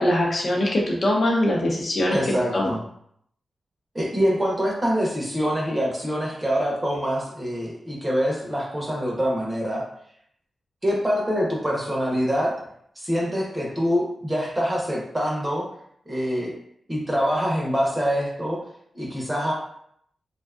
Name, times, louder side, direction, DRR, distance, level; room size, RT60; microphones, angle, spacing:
voice 1, 0.0-2.2 2.5-2.7, left 1 dB, 50° left, -2 dB, 0.6 m, -22 dB
voice 2, 2.1-2.8 3.9-9.8 10.8-12.5 13.0-15.7 16.1-16.5 16.9-18.6 18.9-19.5, equal, 15° right, -3 dB, 0.6 m, -25 dB
2.5 x 2.2 x 2.4 m, 0.69 s
wide cardioid pair, 125°, 0 cm